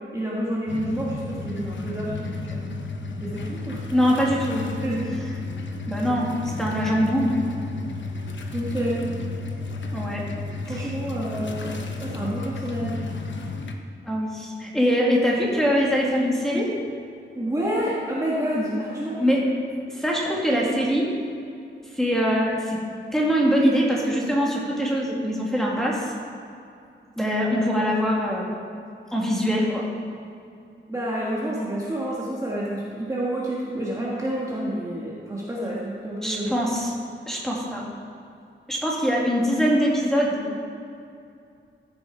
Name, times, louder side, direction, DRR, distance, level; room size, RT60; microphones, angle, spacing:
voice 1, 0.1-2.6 3.2-3.8 4.8-5.1 8.5-9.0 10.7-13.0 17.3-19.4 30.9-36.6, right 1 dB, 15° right, -6 dB, 1.5 m, -29 dB
sound 1, 0.7-13.7, left 3 dB, 65° left, 1.0 m, -33 dB
voice 2, 3.9-4.7 5.9-6.3 6.6-7.4 9.9-10.2 10.7-10.9 14.1-16.7 19.2-19.4 19.9-21.1 21.9-22.8 23.1-26.1 27.2-28.5 29.1-29.8 36.2-36.9 37.3-37.8 38.7-40.6, equal, ahead, -4 dB, 2.0 m, -23 dB
14.5 x 7.7 x 4.9 m, 2.5 s
wide cardioid pair, 170°, 20 cm